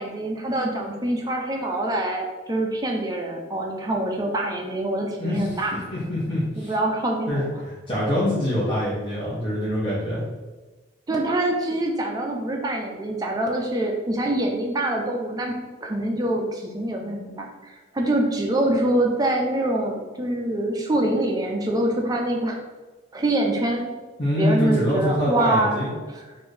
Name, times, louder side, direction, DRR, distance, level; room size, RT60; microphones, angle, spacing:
voice 1, 0.0-5.7 6.7-7.5 11.1-15.5 15.8-22.6 23.1-23.9 24.3-25.9, right 1 dB, 20° right, 1 dB, 0.4 m, -25 dB
voice 2, 5.2-5.6 5.9-6.7 7.3-10.2 24.2-25.9, left 1 dB, 25° left, -9 dB, 0.8 m, -25 dB
3.9 x 2.6 x 3.2 m, 1.2 s
head